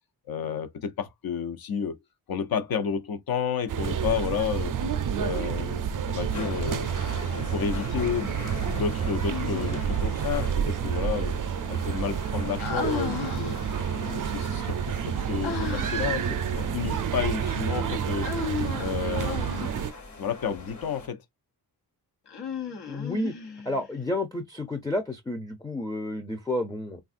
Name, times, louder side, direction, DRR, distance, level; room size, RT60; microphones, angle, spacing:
voice 1, 0.3-2.0 2.3-4.8 5.2-6.9 7.3-8.4 8.6-11.4 11.7-13.6 14.0-18.3 18.8-19.7 20.2-21.2, left 7 dB, 60° left, 0.7 m, -31 dB
sound 1, 3.7-19.9, right 8 dB, 55° right, 0.5 m, -29 dB
sound 2, 6.3-21.1, left 2 dB, 45° left, 1.1 m, -42 dB
Human voice, 9.2-10.1 12.6-13.9 15.4-16.2 18.2-20.0 22.3-23.9, left 6 dB, 80° left, 1.0 m, -35 dB
voice 2, 22.9-23.3 23.6-27.0, left 1 dB, 10° left, 0.5 m, -30 dB
3.4 x 2.4 x 2.5 m
wide cardioid pair, 100°, 40 cm